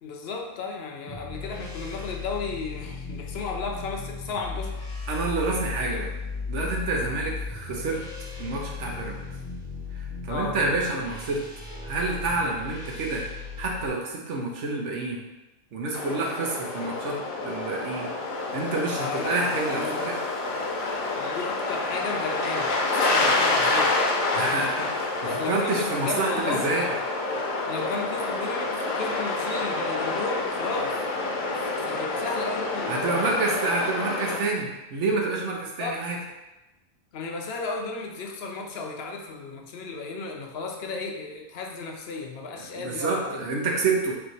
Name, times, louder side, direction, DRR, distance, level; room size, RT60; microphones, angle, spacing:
voice 1, 0.0-4.8 10.3-10.6 18.9-19.3 19.7-20.1 21.1-23.9 24.3-24.7 25.2-26.7 27.7-31.0 31.5-33.9 35.8-36.1 37.1-43.5, left 4 dB, 60° left, 2 dB, 0.7 m, -34 dB
sound 1, 1.1-13.9, left 4 dB, 25° left, 0.9 m, -36 dB
voice 2, 5.1-6.1 6.5-8.0 8.4-9.2 10.2-11.4 11.8-13.3 13.6-15.2 15.7-18.1 18.5-20.1 24.3-26.9 32.9-36.2 42.7-44.2, right 3 dB, 65° right, 0 dB, 1.0 m, -28 dB
sound 2, 15.9-34.4, left 2 dB, 80° left, 1.1 m, -28 dB
3.3 x 3.1 x 3.9 m, 1.0 s
omnidirectional pair, 1.4 m